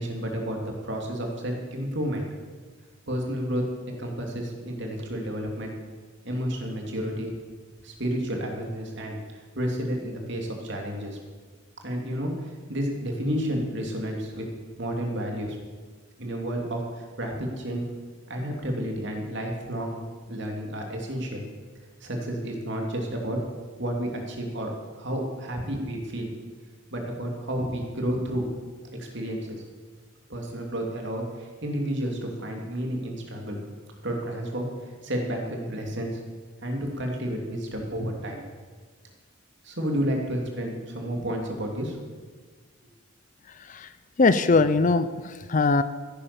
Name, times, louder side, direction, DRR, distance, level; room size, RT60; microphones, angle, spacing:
voice 1, 0.0-2.3 3.1-5.7 6.2-7.3 7.8-11.2 11.8-14.5 14.8-15.6 16.2-17.9 18.3-20.0 20.3-21.5 22.0-23.4 23.7-26.3 26.9-28.5 29.0-29.6 30.3-33.6 34.0-36.2 36.6-38.4 39.6-42.0, equal, 60° right, 1 dB, 3.0 m, -31 dB
voice 2, 44.2-45.8, left 3 dB, 40° left, 12 dB, 0.5 m, -21 dB
15.5 x 9.9 x 7.1 m, 1.4 s
head